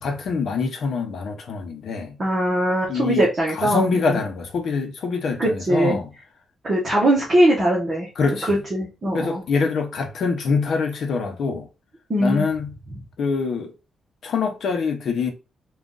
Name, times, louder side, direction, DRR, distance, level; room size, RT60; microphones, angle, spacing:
voice 1, 0.0-2.2 2.9-3.2 3.5-6.1 8.2-8.6 9.1-11.7 12.2-12.7 13.2-13.7 14.2-15.3, left 4 dB, 60° left, 0.8 m, -24 dB
voice 2, 2.2-4.2 5.4-6.0 6.6-8.1 8.5-9.4 12.1-12.4, right 1 dB, 25° right, 1.1 m, -21 dB
3.5 x 2.4 x 3.8 m
wide cardioid pair, 175°, 0 cm